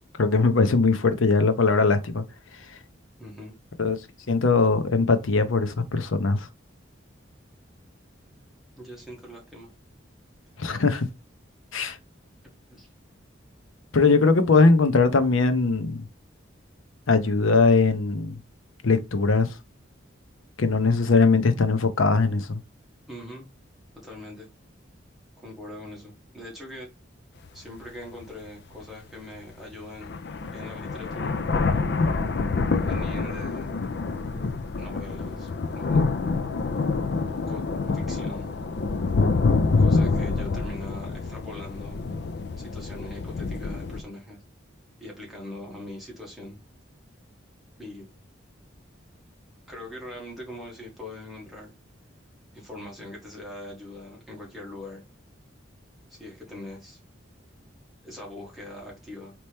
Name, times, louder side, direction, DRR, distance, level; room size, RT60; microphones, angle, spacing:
voice 1, 0.2-2.2 3.8-4.0 4.3-6.5 10.6-11.1 11.7-12.0 13.9-16.0 17.1-18.4 18.8-19.5 20.6-22.6, left 4 dB, 90° left, 0.7 m, -20 dB
voice 2, 3.2-3.5 8.8-9.7 12.7-12.9 23.1-23.5 23.9-24.5 25.4-26.9 27.5-30.1 30.5-31.3 32.8-33.7 34.8-35.5 35.7-36.1 37.5-38.5 39.8-42.0 42.6-44.4 45.0-46.6 47.8-48.1 49.7-51.7 52.5-55.0 56.1-57.0 58.0-59.3, left 1 dB, ahead, 1.5 m, -41 dB
sound 1, 27.5-27.6 28.2-28.3 29.6-29.7 30.0-44.0, left 4 dB, 55° left, 0.4 m, -26 dB
4.2 x 3.0 x 3.3 m
head